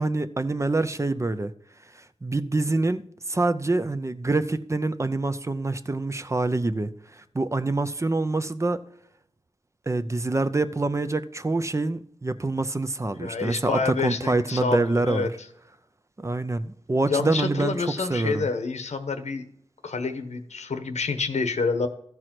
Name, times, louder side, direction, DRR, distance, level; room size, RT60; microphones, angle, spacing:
voice 1, 0.0-1.5 1.9-8.8 9.9-15.3 16.2-18.5, right 2 dB, 25° right, 0.6 m, -26 dB
voice 2, 13.2-15.3 17.1-19.5 19.8-21.9, left 4 dB, 85° left, 1.1 m, -28 dB
13.5 x 4.8 x 6.0 m
wide cardioid pair, 95°, 11 cm